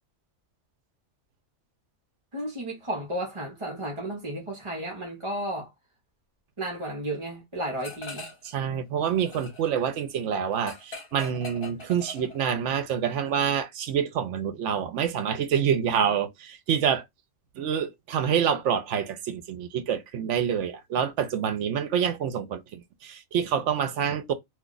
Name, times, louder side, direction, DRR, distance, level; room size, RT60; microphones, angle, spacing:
voice 1, 2.3-5.7 6.6-8.3, right 1 dB, 25° right, 0.8 m, -33 dB
sound 1, 7.8-8.5 8.8-12.7, left 1 dB, 45° left, 1.3 m, -42 dB
voice 2, 8.4-17.0 17.6-24.3, right 8 dB, 70° right, 0.9 m, -27 dB
2.6 x 2.3 x 3.8 m
omnidirectional pair, 1.4 m